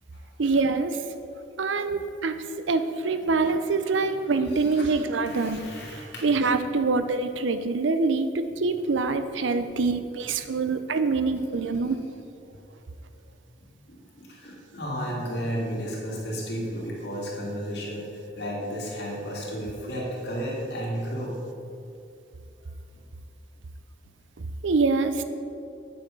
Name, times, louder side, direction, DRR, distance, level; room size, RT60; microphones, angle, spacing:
voice 1, 0.4-1.0 1.6-2.4 2.7-5.6 6.2-12.0 24.6-25.1, right 3 dB, 80° right, 10 dB, 0.6 m, -25 dB
voice 2, 4.5-4.9 5.2-6.3 6.8-6.9 13.6-18.0 18.4-21.4, equal, 65° left, -4 dB, 2.5 m, -33 dB
8.6 x 7.8 x 5.3 m, 2.6 s
head